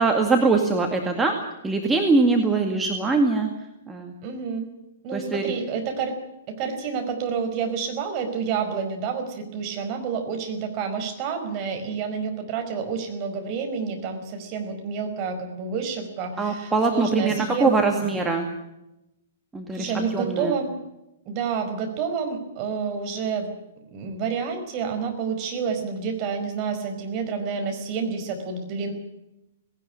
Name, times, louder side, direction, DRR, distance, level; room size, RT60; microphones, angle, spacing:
voice 1, 0.0-1.3 1.6-3.5 3.9-4.1 5.1-5.4 16.4-18.5 19.5-20.6, right 3 dB, 10° right, 2 dB, 2.1 m, -22 dB
voice 2, 4.2-4.7 5.0-6.2 6.5-17.8 19.7-20.7 21.3-23.5 23.9-28.9, right 6 dB, 35° right, 4 dB, 5.0 m, -29 dB
18.5 x 18.0 x 9.9 m, 0.91 s
figure-of-eight pair, 115°, 0 cm